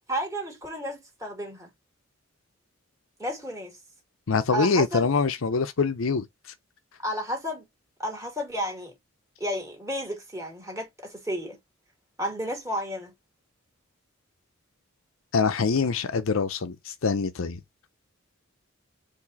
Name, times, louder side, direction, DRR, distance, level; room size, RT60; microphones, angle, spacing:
voice 1, 0.1-1.7 3.2-3.8 4.5-5.1 7.0-7.7 8.0-8.9 9.4-11.6 12.2-13.1, equal, 15° right, 2.3 m, -32 dB
voice 2, 4.3-6.2 15.3-17.6, left 4 dB, 75° left, 0.6 m, -24 dB
4.7 x 2.7 x 4.1 m
head